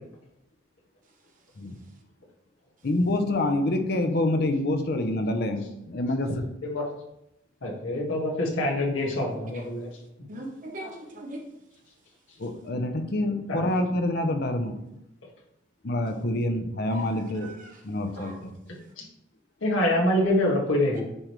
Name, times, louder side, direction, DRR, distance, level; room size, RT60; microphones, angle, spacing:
voice 1, 2.8-6.5 12.4-14.8 15.8-17.5 17.8-18.5, left 1 dB, 50° left, 6 dB, 0.6 m, -27 dB
voice 2, 7.6-9.9 13.5-13.6 19.0-19.1 19.6-21.0, left 1 dB, 90° left, -2 dB, 1.6 m, -25 dB
voice 3, 9.3-9.6 10.3-11.4 16.9-17.0 18.2-18.4 20.9-21.0, right 1 dB, 40° right, 1 dB, 1.0 m, -39 dB
9.7 x 3.3 x 3.1 m, 0.85 s
head